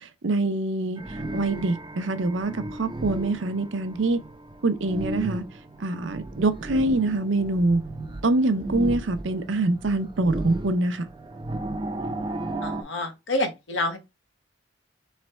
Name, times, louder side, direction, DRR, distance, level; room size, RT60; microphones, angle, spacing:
voice 1, 0.2-1.0 1.3-4.2 4.6-5.4 5.8-7.8 8.2-11.1, right 2 dB, 75° right, 0.6 m, -24 dB
sound 1, 1.0-12.8, right 2 dB, 25° right, 0.5 m, -35 dB
voice 2, 12.6-14.0, left 1 dB, 75° left, 1.0 m, -28 dB
3.3 x 3.2 x 4.3 m
head